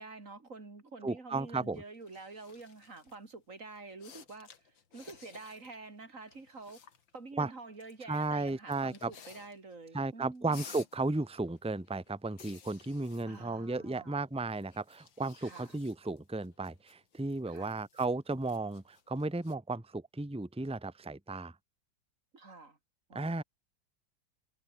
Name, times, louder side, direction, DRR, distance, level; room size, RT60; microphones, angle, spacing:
voice 1, 0.0-6.8 7.1-10.6 13.3-14.2 15.4-15.8 17.5-17.8 22.3-22.8 23.1-23.4, right 3 dB, 40° right, 4.0 m, -48 dB
voice 2, 1.0-1.8 7.4-7.5 8.1-9.1 9.9-21.5 23.1-23.4, right 3 dB, 5° right, 1.4 m, -34 dB
sound 1, 1.4-3.2 3.8-5.8 6.0-7.2 7.8-9.8 10.1-14.1 14.5-19.5, left 7 dB, 70° left, 2.7 m, -56 dB
omnidirectional pair, 2.1 m